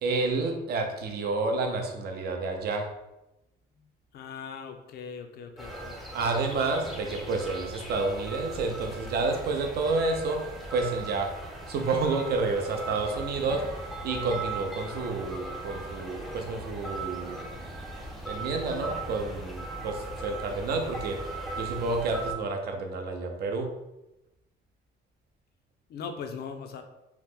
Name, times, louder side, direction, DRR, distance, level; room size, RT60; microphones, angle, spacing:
voice 1, 0.0-2.9 6.1-11.3 11.7-13.7 14.0-17.5 18.3-21.2 21.6-23.7, right 3 dB, 55° right, 3 dB, 0.5 m, -29 dB
voice 2, 4.1-6.0 25.9-26.8, left 6 dB, 60° left, 6 dB, 0.4 m, -39 dB
sound 1, 5.6-22.3, right 2 dB, ahead, 0.5 m, -38 dB
2.9 x 2.0 x 3.5 m, 0.95 s
cardioid pair, 140°, 19 cm